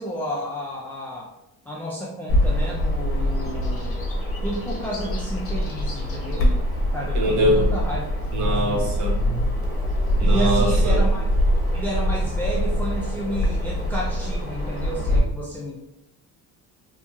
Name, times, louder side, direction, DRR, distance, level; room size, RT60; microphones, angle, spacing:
voice 1, 0.0-1.3 1.7-4.0 4.4-6.5 6.9-8.1 8.4-9.0 10.2-11.3 11.7-15.7, equal, 5° left, -5 dB, 0.4 m, -31 dB
Bird vocalization bird call bird song, 2.3-15.2, equal, 40° left, 0.8 m, -23 dB
voice 2, 7.1-7.7 8.3-9.4 10.2-11.0, right 1 dB, 60° right, 0 dB, 0.9 m, -22 dB
2.8 x 2.7 x 2.3 m, 0.85 s
cardioid pair, 100°, 34 cm